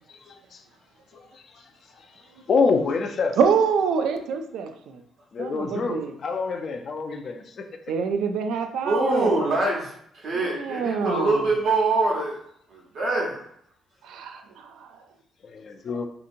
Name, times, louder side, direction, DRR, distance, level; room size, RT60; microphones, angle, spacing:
voice 1, 0.1-0.6 1.3-1.4 2.5-3.4 5.3-7.7 15.5-16.1, left 4 dB, 55° left, 6 dB, 0.4 m, -26 dB
voice 2, 3.4-5.0 5.4-6.1 7.9-9.4 10.4-11.4 14.0-14.9, right 6 dB, 85° right, 6 dB, 0.3 m, -26 dB
voice 3, 8.8-12.4 12.7-13.4, right 2 dB, 65° right, -3 dB, 0.9 m, -24 dB
2.8 x 2.7 x 2.5 m, 0.71 s
cardioid pair, 90°, 0 cm